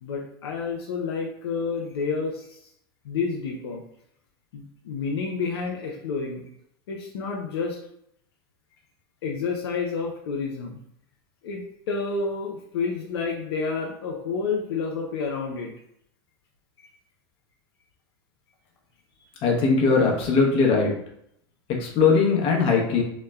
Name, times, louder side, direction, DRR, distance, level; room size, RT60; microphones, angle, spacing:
voice 1, 0.0-2.7 3.0-3.8 4.5-6.5 6.9-7.8 9.2-10.8 11.4-15.7 16.8-16.9, left 4 dB, 85° left, 0 dB, 0.4 m, -29 dB
voice 2, 19.4-20.9 21.8-23.0, left 4 dB, 45° left, 0 dB, 0.8 m, -20 dB
3.0 x 2.0 x 2.2 m, 0.72 s
hypercardioid pair, 105°, 13 cm